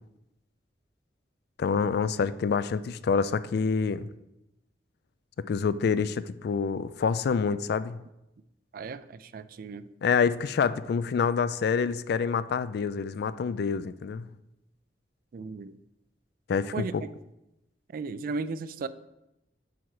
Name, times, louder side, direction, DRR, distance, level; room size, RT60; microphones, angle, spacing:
voice 1, 1.6-4.1 5.4-8.0 10.0-14.3 16.5-17.0, left 5 dB, 60° left, 0.3 m, -27 dB
voice 2, 8.7-9.9 15.3-15.7 16.7-16.9 17.9-18.9, right 4 dB, 55° right, 0.3 m, -35 dB
8.1 x 4.5 x 4.7 m
head